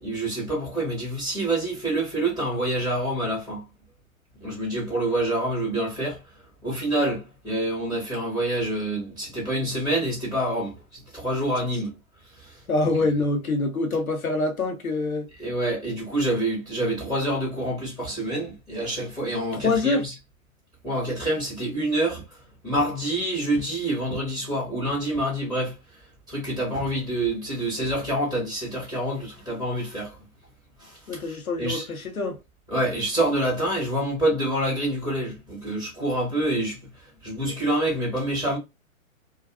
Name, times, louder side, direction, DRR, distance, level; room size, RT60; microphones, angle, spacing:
voice 1, 0.0-3.6 4.4-6.2 6.6-11.9 12.4-12.6 15.4-20.1 20.8-22.2 22.6-25.8 26.3-30.2 30.8-31.9 32.7-38.6, right 1 dB, 10° left, 0.6 m, -27 dB
voice 2, 12.7-15.3 19.5-20.0 31.1-32.4, left 3 dB, 75° left, 0.8 m, -25 dB
2.4 x 2.3 x 2.3 m
figure-of-eight pair, 120°, 43 cm